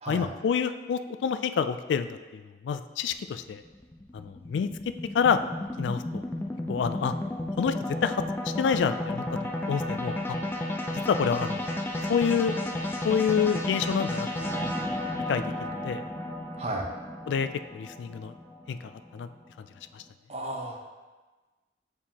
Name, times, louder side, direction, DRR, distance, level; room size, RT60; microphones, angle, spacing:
voice 1, 0.1-3.6 4.1-4.7 5.1-5.4 5.8-6.2 6.7-7.1 7.6-7.7 8.0-9.2 9.7-10.4 10.9-11.7 12.1-12.6 13.0-14.7 15.3-16.0 17.3-18.3 18.7-19.3 19.6-19.7 19.9-20.0, left 6 dB, 85° left, 11 dB, 0.3 m, -28 dB
sound 1, 3.1-19.5, left 1 dB, 10° left, 0.4 m, -33 dB
voice 2, 16.6-16.9 20.3-20.8, right 1 dB, 35° right, 2 dB, 0.7 m, -33 dB
7.2 x 4.8 x 2.8 m, 1.3 s
head